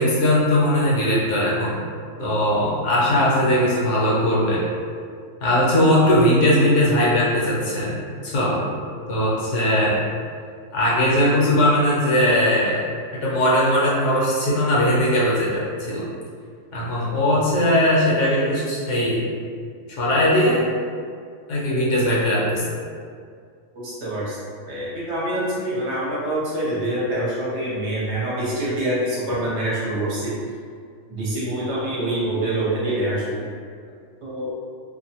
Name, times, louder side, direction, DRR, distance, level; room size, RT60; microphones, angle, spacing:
voice 1, 0.0-1.8 2.2-4.6 5.4-8.0 8.2-9.9 10.7-12.8 13.1-16.0 16.7-19.2 20.0-20.6 21.5-22.7, left 1 dB, 65° left, -7 dB, 0.9 m, -19 dB
voice 2, 23.7-24.4 24.7-30.3 31.1-33.4 34.2-34.5, right 1 dB, 60° right, -7 dB, 1.0 m, -25 dB
2.5 x 2.1 x 2.8 m, 2.1 s
omnidirectional pair, 1.5 m